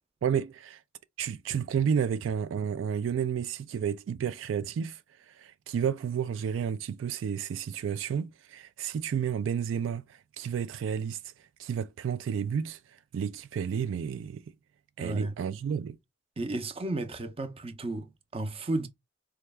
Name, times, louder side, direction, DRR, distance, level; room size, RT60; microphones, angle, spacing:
voice 1, 0.2-0.8 1.2-14.4 15.0-16.0, right 7 dB, 80° right, 0.3 m, -31 dB
voice 2, 15.0-15.3 16.4-18.9, right 2 dB, 30° right, 0.6 m, -33 dB
4.4 x 2.3 x 3.3 m
head